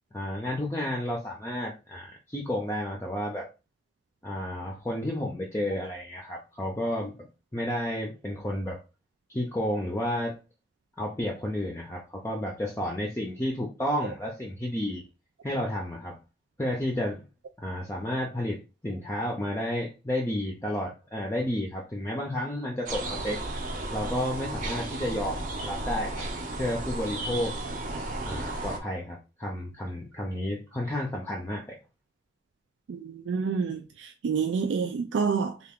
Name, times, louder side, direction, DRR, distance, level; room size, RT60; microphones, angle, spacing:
voice 1, 0.1-3.5 4.2-7.3 7.5-8.8 9.3-10.4 11.0-15.0 15.4-16.2 16.6-17.2 17.6-23.4 23.9-26.2 26.6-27.6 28.2-31.8, left 1 dB, 15° left, 0.5 m, -31 dB
sound 1, 22.9-28.8, right 2 dB, 45° right, 0.7 m, -34 dB
voice 2, 32.9-33.8 34.2-35.5, right 5 dB, 80° right, 0.3 m, -27 dB
3.4 x 2.4 x 3.5 m
head